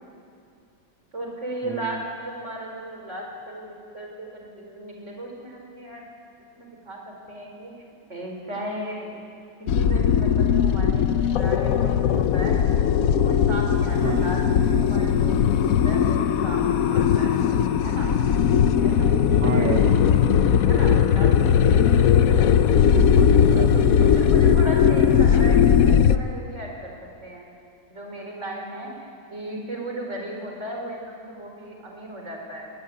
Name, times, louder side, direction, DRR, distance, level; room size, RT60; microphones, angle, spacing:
voice 1, 1.1-4.1 4.3-6.1 6.5-7.0 7.3-7.7 8.1-9.2 9.7-12.6 13.0-17.5 17.8-18.1 18.8-19.7 20.6-21.9 24.1-26.9 27.2-27.5 27.9-32.7, right 1 dB, 40° right, 0 dB, 5.1 m, -36 dB
voice 2, 1.6-2.0 14.0-14.4 19.3-20.1 22.8-24.1 24.4-24.6, right 5 dB, 90° right, 4 dB, 2.1 m, -30 dB
sound 1, 9.7-26.2, left 8 dB, 60° left, 1.0 m, -19 dB
25.0 x 19.0 x 9.6 m, 2.4 s
omnidirectional pair, 2.0 m